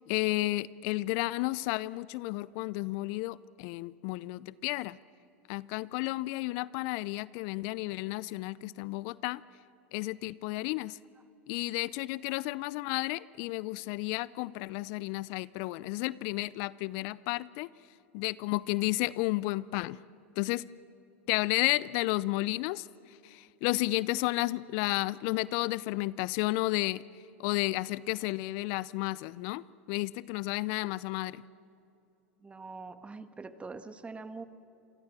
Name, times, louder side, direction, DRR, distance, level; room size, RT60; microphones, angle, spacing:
voice 1, 0.0-5.0 5.5-9.4 9.9-11.0 11.5-17.7 18.1-20.0 20.4-20.7 21.3-22.9 23.2-27.0 27.4-31.4, left 20 dB, 60° left, 21 dB, 0.5 m, -32 dB
voice 2, 32.4-34.4, right 4 dB, 15° right, 11 dB, 1.6 m, -43 dB
28.0 x 23.0 x 7.5 m, 2.8 s
hypercardioid pair, 90°, 7 cm